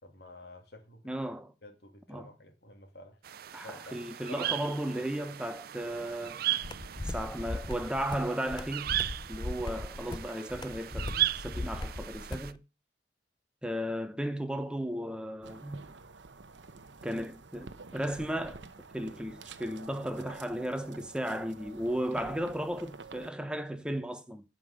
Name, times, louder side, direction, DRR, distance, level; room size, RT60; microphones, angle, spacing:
voice 1, 0.0-1.0 1.6-3.2 3.6-4.5, left 2 dB, 60° left, 2.5 m, -50 dB
voice 2, 1.0-1.5 2.1-2.3 3.5-6.4 7.0-9.0 9.3-12.6 13.6-15.9 17.0-18.6 18.9-24.4, equal, 5° right, 1.0 m, -35 dB
sound 1, 3.2-12.5, right 13 dB, 55° right, 0.4 m, -37 dB
sound 2, 6.6-12.5, left 2 dB, 25° left, 0.5 m, -38 dB
sound 3, 15.4-23.3, right 4 dB, 80° right, 0.9 m, -49 dB
11.0 x 5.5 x 6.5 m
head